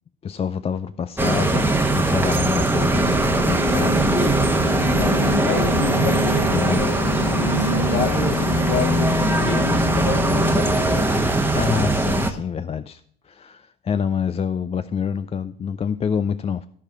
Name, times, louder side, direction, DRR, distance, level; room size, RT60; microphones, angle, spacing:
voice 1, 0.2-3.9 6.4-6.9 11.5-13.0 13.3-16.7, left 7 dB, 20° left, 12 dB, 0.4 m, -26 dB
sound 1, 1.2-12.3, right 2 dB, 5° right, 1.1 m, -21 dB
sound 2, 3.0-11.3, left 4 dB, 80° left, 1.1 m, -27 dB
voice 2, 4.9-7.0 7.4-11.3, left 5 dB, 45° left, 2 dB, 2.5 m, -29 dB
14.0 x 4.9 x 4.5 m, 0.62 s
hypercardioid pair, 65°, 30 cm